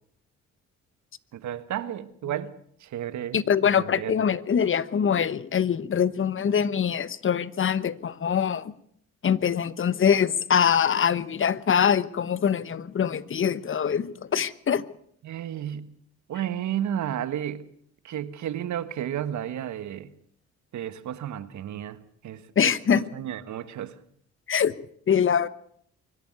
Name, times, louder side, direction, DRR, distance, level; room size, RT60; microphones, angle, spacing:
voice 1, 1.3-2.5 2.8-3.4 3.8-4.3 15.2-15.9 16.3-17.6 18.0-20.1 20.7-23.9, right 10 dB, 70° right, 1.6 m, -32 dB
voice 2, 3.3-8.7 9.2-14.9 22.6-23.0 24.5-24.7 25.1-25.5, left 8 dB, 45° left, 1.1 m, -23 dB
24.5 x 11.5 x 9.5 m
cardioid pair, 90°, 30 cm